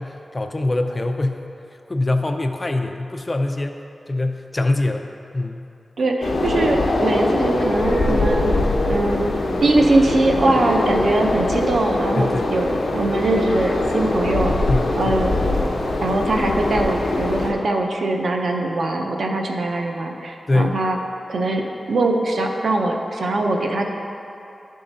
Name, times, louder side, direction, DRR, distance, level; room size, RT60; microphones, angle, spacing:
voice 1, 0.0-1.5 1.9-3.8 4.1-5.7 12.2-12.6 14.7-15.2 20.5-20.8, left 2 dB, 25° left, 5 dB, 0.3 m, -23 dB
voice 2, 6.0-8.5 8.9-9.3 9.6-12.7 12.9-14.6 15.0-15.4 16.0-21.0 21.3-23.9, right 2 dB, 65° right, 2 dB, 0.6 m, -21 dB
sound 1, 6.2-17.5, left 2 dB, 90° left, 0.8 m, -22 dB
11.0 x 3.7 x 4.0 m, 2.7 s
wide cardioid pair, 155°, 0 cm